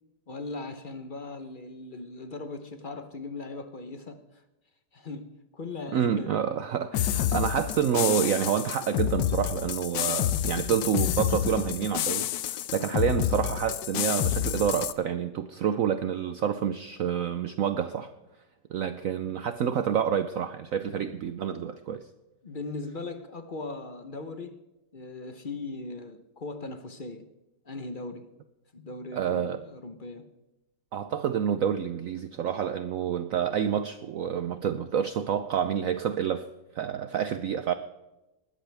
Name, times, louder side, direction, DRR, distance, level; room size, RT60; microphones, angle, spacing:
voice 1, 0.3-4.4 4.9-6.5 10.0-10.2 19.1-19.2 20.9-21.1 22.4-24.6 24.9-27.3 27.6-28.3 28.7-30.3, left 3 dB, 40° left, 0.8 m, -39 dB
voice 2, 5.9-18.1 18.7-22.0 29.1-29.6 30.9-36.5 36.7-37.7, right 8 dB, 65° right, 0.9 m, -28 dB
sound 1, 6.9-14.9, left 12 dB, 85° left, 1.3 m, -29 dB
20.0 x 13.5 x 3.4 m
omnidirectional pair, 1.9 m